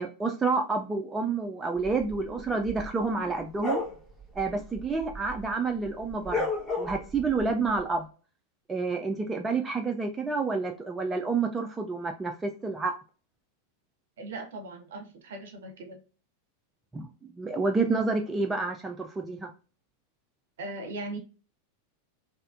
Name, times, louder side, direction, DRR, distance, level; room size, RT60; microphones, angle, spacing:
voice 1, 0.0-3.8 4.4-6.5 6.8-8.1 8.7-12.9 16.9-19.5, right 4 dB, 15° right, 3 dB, 0.4 m, -29 dB
sound 1, 1.8-5.5 5.8-7.8, left 2 dB, 10° left, 1.0 m, -34 dB
voice 2, 14.2-16.0 20.6-21.2, right 2 dB, 60° right, 4 dB, 0.8 m, -39 dB
3.3 x 2.7 x 2.4 m, 0.35 s
figure-of-eight pair, 90°, 0 cm